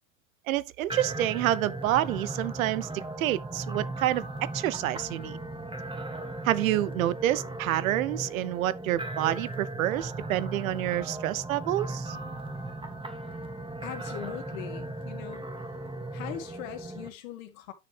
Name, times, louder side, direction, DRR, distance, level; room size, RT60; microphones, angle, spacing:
voice 1, 0.5-5.4 6.4-12.2, right 14 dB, 80° right, 0.7 m, -28 dB
sound 1, 0.9-17.1, right 2 dB, 10° right, 2.2 m, -37 dB
voice 2, 13.8-15.5 16.1-17.7, left 11 dB, 75° left, 2.1 m, -41 dB
10.0 x 6.6 x 3.3 m
hypercardioid pair, 70°, 41 cm